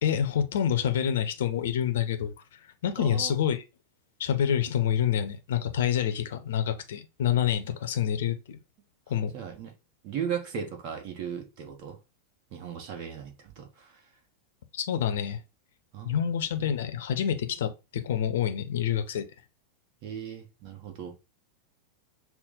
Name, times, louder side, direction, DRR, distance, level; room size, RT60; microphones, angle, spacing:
voice 1, 0.0-2.3 2.8-3.6 4.2-8.6 9.1-9.3 14.7-15.4 16.0-19.2, left 9 dB, 60° left, 0.6 m, -27 dB
voice 2, 3.0-3.4 9.3-9.7 10.0-12.0 12.5-14.0 15.9-16.2 20.0-21.2, right 7 dB, 45° right, 1.1 m, -37 dB
5.8 x 2.1 x 3.8 m
figure-of-eight pair, 90°, 0 cm